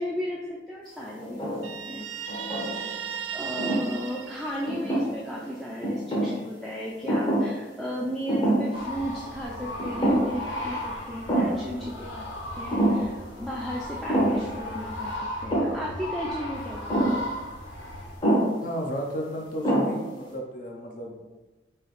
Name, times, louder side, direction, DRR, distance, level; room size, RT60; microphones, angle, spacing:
voice 1, 0.0-1.5 1.9-2.4 3.3-12.3 12.5-15.1 15.4-17.1, equal, ahead, -5 dB, 0.4 m, -34 dB
sound 1, 1.2-1.8 2.3-3.0 3.6-3.9 4.7-5.4 5.8-6.4 7.1-7.6 7.9-8.0 8.3-8.8 9.1-9.2 9.8-10.5 10.7-10.8 11.3-11.7 12.7-13.1 14.1-14.5 15.5-15.9 16.9-17.3 18.2-18.6 19.2-19.3 19.6-20.1, right 1 dB, 25° left, 0.9 m, -25 dB
Guitar, 1.6-5.2, right 8 dB, 80° right, 0.4 m, -36 dB
sound 2, 8.7-18.2, left 1 dB, 85° left, 0.8 m, -36 dB
voice 2, 18.6-21.4, equal, 45° left, 1 dB, 0.6 m, -33 dB
3.3 x 2.8 x 4.0 m, 1.1 s
head